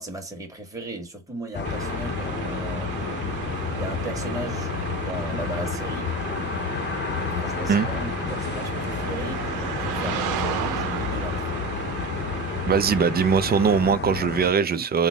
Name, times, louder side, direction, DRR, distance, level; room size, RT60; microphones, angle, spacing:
voice 1, 0.0-4.7 5.0-6.2 7.4-11.5 14.5-14.9, right 2 dB, 10° right, 1.4 m, -37 dB
sound 1, 1.5-14.5, left 6 dB, 35° left, 0.7 m, -30 dB
sound 2, 1.6-13.8, right 9 dB, 90° right, 0.6 m, -34 dB
voice 2, 12.7-15.1, right 6 dB, 30° right, 0.5 m, -21 dB
3.8 x 2.0 x 3.4 m
cardioid pair, 90°, 30 cm